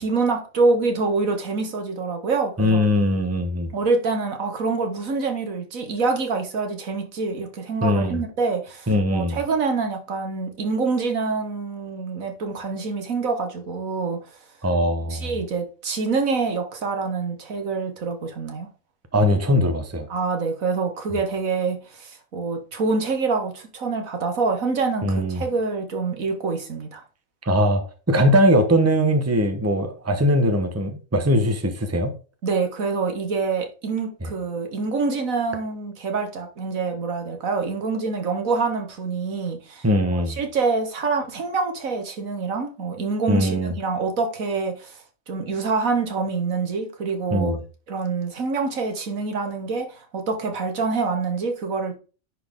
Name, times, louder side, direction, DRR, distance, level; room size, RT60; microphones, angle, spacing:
voice 1, 0.0-2.8 3.7-14.2 15.1-18.7 20.1-27.0 32.4-39.9 40.1-47.6 47.9-52.0, right 4 dB, 80° right, 1.9 m, -26 dB
voice 2, 2.6-3.7 7.8-8.2 8.9-9.4 14.6-15.3 19.1-20.1 25.0-25.4 27.4-32.1 39.8-40.4 43.3-43.7 47.3-47.6, equal, 10° right, 1.1 m, -20 dB
10.0 x 4.6 x 3.6 m
omnidirectional pair, 1.4 m